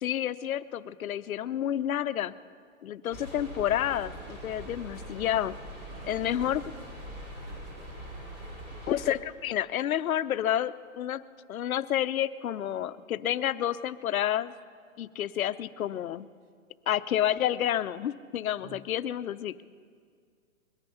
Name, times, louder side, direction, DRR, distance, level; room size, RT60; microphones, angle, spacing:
voice 1, 0.0-2.3 2.8-5.6 6.1-6.6 8.9-11.2 11.5-14.5 15.0-16.3 16.9-19.6, left 11 dB, 80° left, 15 dB, 0.7 m, -29 dB
sound 1, 3.1-9.1, right 1 dB, 25° right, 2.6 m, -42 dB
voice 2, 5.9-6.5 7.3-8.0 18.6-18.9, right 6 dB, 45° right, 11 dB, 0.8 m, -53 dB
21.5 x 8.9 x 5.6 m, 2.1 s
hypercardioid pair, 170°, 41 cm